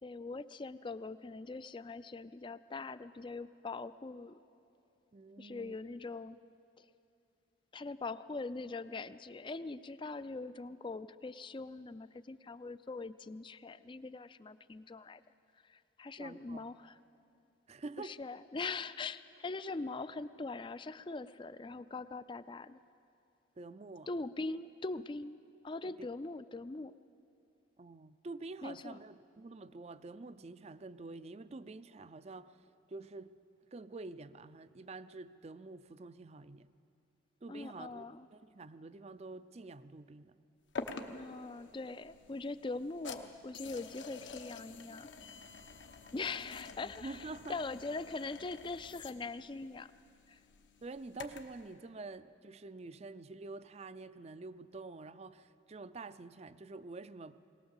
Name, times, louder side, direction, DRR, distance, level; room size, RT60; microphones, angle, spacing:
voice 1, 0.0-4.4 5.4-6.4 6.8-6.9 7.7-15.2 15.6-17.0 18.0-22.8 24.1-25.4 25.6-26.9 28.6-29.0 37.5-38.3 41.0-45.1 46.1-49.9 50.3-50.4, left 3 dB, 25° left, 15 dB, 0.4 m, -42 dB
voice 2, 5.1-5.8 16.2-16.7 17.7-18.2 23.6-24.1 25.8-25.9 27.8-33.4 33.7-36.7 37.4-38.0 38.3-40.4 46.8-47.6 50.8-57.4, right 3 dB, 35° right, 14 dB, 0.5 m, -47 dB
sound 1, 40.8-51.6, left 4 dB, 75° left, 1.1 m, -48 dB
21.5 x 18.5 x 7.2 m, 2.6 s
head